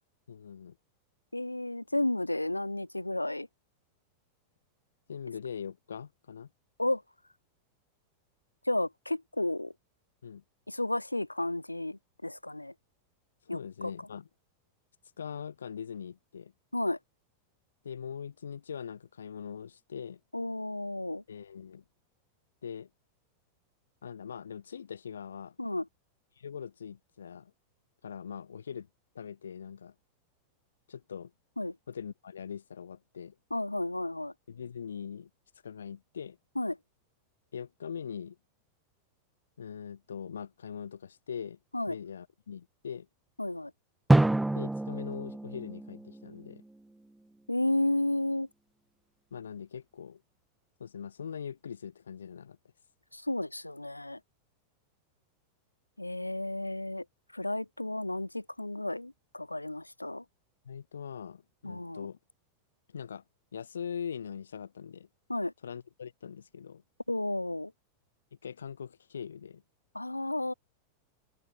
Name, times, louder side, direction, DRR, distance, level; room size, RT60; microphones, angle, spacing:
voice 1, 0.3-0.8 5.1-6.5 10.2-10.4 13.5-14.3 15.2-16.5 17.8-20.2 21.3-21.8 22.6-22.9 24.0-25.6 26.4-27.5 28.0-28.9 29.1-29.9 30.9-31.3 31.9-33.4 34.5-35.3 35.6-36.4 37.5-38.4 39.6-41.6 41.9-43.1 44.6-46.6 49.3-50.2 50.8-52.6 60.6-62.2 62.9-63.2 63.5-65.1 65.6-66.8 68.4-69.6, left 7 dB, 70° left, 4.1 m, -42 dB
voice 2, 1.3-3.5 6.8-7.0 8.7-9.7 10.7-12.7 13.5-13.6 16.7-17.0 20.3-21.2 25.6-25.8 31.6-31.7 33.5-34.3 36.6-36.7 41.7-42.0 43.4-43.7 47.5-48.5 53.1-54.2 56.0-57.0 57.3-60.2 61.6-62.1 65.3-65.5 67.1-67.7 70.0-70.5, left 1 dB, 85° left, 3.9 m, -32 dB
Drum, 44.1-46.8, right 2 dB, 5° right, 1.2 m, -27 dB
open air
figure-of-eight pair, 90°, 0 cm